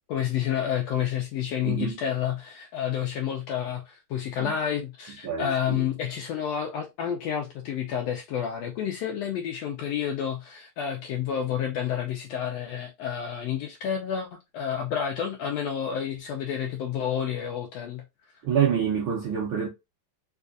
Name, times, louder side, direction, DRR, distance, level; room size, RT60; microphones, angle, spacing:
voice 1, 0.1-14.3 14.5-18.0, left 9 dB, 75° left, 1.6 m, -30 dB
voice 2, 1.6-2.0 4.4-4.5 5.2-5.8 18.4-19.7, right 8 dB, 75° right, 1.1 m, -27 dB
4.8 x 2.4 x 2.5 m
omnidirectional pair, 3.5 m